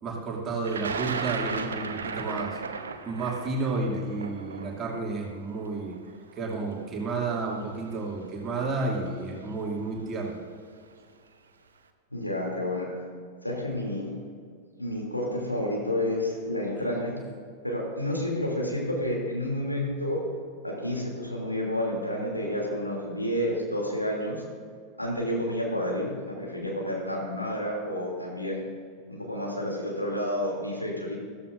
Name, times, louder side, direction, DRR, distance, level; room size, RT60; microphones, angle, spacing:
voice 1, 0.0-2.6 3.1-6.0 6.4-10.4, right 3 dB, 25° right, -2 dB, 2.6 m, -31 dB
Thunder, 0.6-6.7 7.6-7.7 8.8-9.1 9.4-9.9, right 5 dB, 70° right, 0.8 m, -36 dB
voice 2, 12.1-12.9 13.4-14.1 14.8-17.2 17.6-20.2 20.6-24.4 25.0-28.6 29.1-31.2, left 1 dB, 85° left, -2 dB, 2.9 m, -30 dB
15.0 x 14.0 x 2.6 m, 2.1 s
figure-of-eight pair, 90°, 0 cm